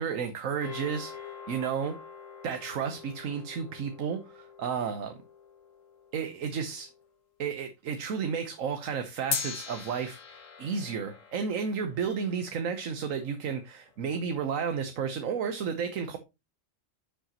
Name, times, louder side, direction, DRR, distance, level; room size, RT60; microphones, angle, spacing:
voice 1, 0.0-2.0 2.4-5.2 6.1-6.9 7.4-16.2, right 6 dB, 85° right, 1.3 m, -32 dB
sound 1, 0.6-7.1 9.3-13.7, left 6 dB, 75° left, 1.4 m, -42 dB
9.0 x 7.0 x 2.9 m
omnidirectional pair, 1.3 m